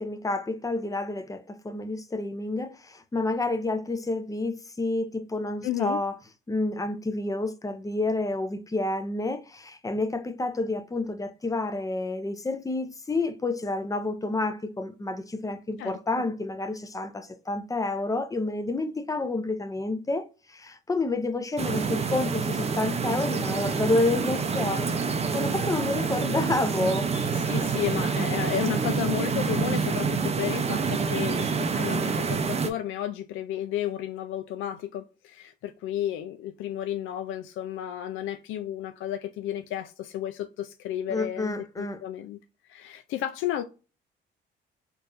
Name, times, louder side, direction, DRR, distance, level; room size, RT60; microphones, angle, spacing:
voice 1, 0.0-6.1 6.5-25.0 25.3-27.1 41.1-42.0, left 2 dB, 15° left, 0.6 m, -29 dB
voice 2, 5.6-6.0 15.8-16.0 21.9-22.0 25.5-25.6 27.3-42.4 42.7-43.6, left 11 dB, 85° left, 0.4 m, -32 dB
sound 1, 21.6-32.7, right 5 dB, 30° right, 0.6 m, -27 dB
4.5 x 2.6 x 2.5 m
cardioid pair, 90°, 20 cm